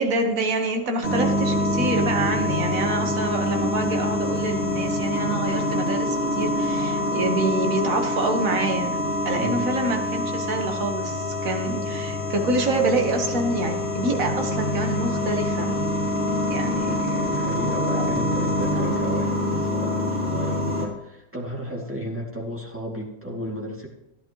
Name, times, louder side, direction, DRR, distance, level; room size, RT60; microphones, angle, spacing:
voice 1, 0.0-9.0 9.3-15.8 16.5-17.2 18.8-19.0, right 2 dB, 50° right, 4 dB, 1.8 m, -26 dB
sound 1, 1.0-20.9, left 1 dB, 30° left, 2.6 m, -25 dB
voice 2, 9.3-9.7 16.7-23.9, equal, 5° right, -2 dB, 2.5 m, -33 dB
14.5 x 10.5 x 3.1 m, 0.89 s
omnidirectional pair, 1.9 m